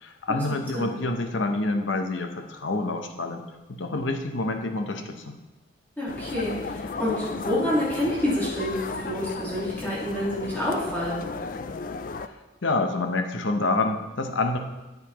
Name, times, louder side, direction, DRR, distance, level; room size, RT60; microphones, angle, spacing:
voice 1, 0.0-5.4 12.2-12.3 12.6-14.6, left 2 dB, 80° left, 6 dB, 0.9 m, -27 dB
voice 2, 6.0-11.2, left 1 dB, 10° left, -8 dB, 1.9 m, -28 dB
sound 1, 6.1-12.3, left 4 dB, 45° left, 0.4 m, -34 dB
9.4 x 9.2 x 3.0 m, 1.1 s
head